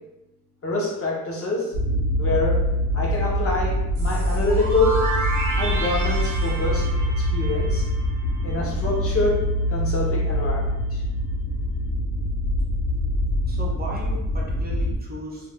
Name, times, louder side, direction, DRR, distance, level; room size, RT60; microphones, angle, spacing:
voice 1, 0.6-1.7 2.2-2.6 2.9-5.0 5.6-6.9 7.2-7.9 8.4-11.0, left 2 dB, 45° left, -3 dB, 0.7 m, -26 dB
sound 1, 1.7-14.9, equal, 85° left, 0.8 m, -24 dB
sound 2, 4.0-8.7, right 3 dB, 70° right, 0.7 m, -31 dB
voice 2, 13.5-15.5, right 2 dB, 30° right, -4 dB, 0.4 m, -36 dB
2.5 x 2.1 x 3.3 m, 1.0 s
wide cardioid pair, 150°, 33 cm